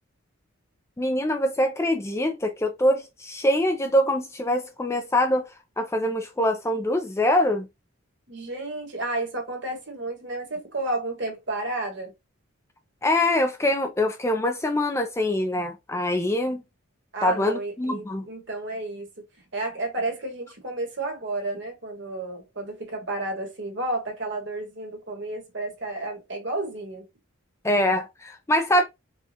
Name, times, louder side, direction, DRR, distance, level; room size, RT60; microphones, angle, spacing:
voice 1, 1.0-5.5 5.8-7.7 13.0-16.6 17.2-18.2 27.6-28.8, left 1 dB, 15° left, 0.4 m, -24 dB
voice 2, 8.3-12.1 17.1-19.2 19.5-27.1, right 2 dB, 55° right, 1.4 m, -32 dB
4.7 x 2.3 x 2.8 m
head